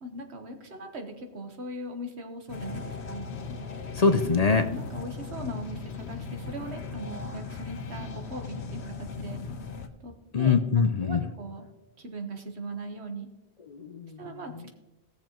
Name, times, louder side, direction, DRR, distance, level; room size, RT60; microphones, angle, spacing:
voice 1, 0.0-3.3 4.6-9.4 10.0-10.6 11.0-11.7 12.0-13.3 14.2-14.7, right 1 dB, 80° right, 5 dB, 1.5 m, -40 dB
sound 1, 2.5-9.9, left 4 dB, 80° left, 1.1 m, -38 dB
voice 2, 3.9-4.7 10.3-11.2 13.7-14.4, left 5 dB, 45° left, 8 dB, 0.5 m, -23 dB
17.5 x 6.8 x 3.0 m, 0.99 s
omnidirectional pair, 1.1 m